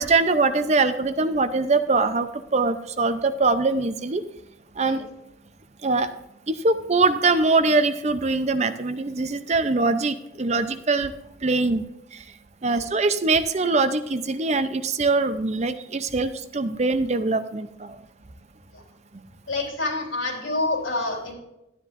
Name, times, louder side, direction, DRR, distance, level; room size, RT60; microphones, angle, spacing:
voice 1, 0.0-4.2 4.8-5.0 5.8-6.1 6.5-11.1 11.4-11.8 12.1-12.2 12.6-18.0, right 3 dB, 35° right, 10 dB, 0.6 m, -22 dB
voice 2, 19.5-21.3, left 2 dB, 85° left, -1 dB, 3.7 m, -28 dB
12.5 x 10.0 x 2.6 m, 0.88 s
head